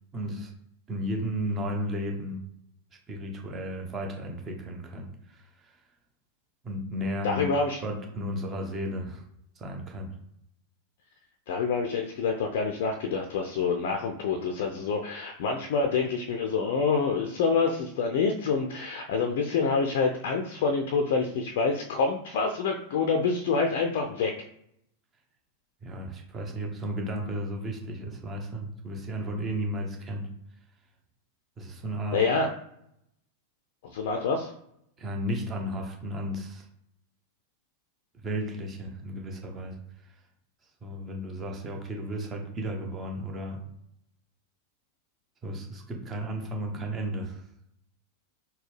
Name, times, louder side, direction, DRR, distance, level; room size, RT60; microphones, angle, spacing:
voice 1, 0.1-0.5 0.9-2.4 3.1-5.7 6.6-7.5 7.8-9.2 9.6-10.1 25.8-30.3 31.6-32.2 35.0-36.6 38.2-39.8 40.8-43.6 45.4-47.4, equal, 25° right, 2 dB, 0.8 m, -34 dB
voice 2, 7.2-7.8 11.5-24.3 32.1-32.5 33.8-34.5, left 4 dB, 50° left, 3 dB, 0.4 m, -27 dB
4.0 x 2.2 x 3.2 m, 0.75 s
figure-of-eight pair, 90°, 0 cm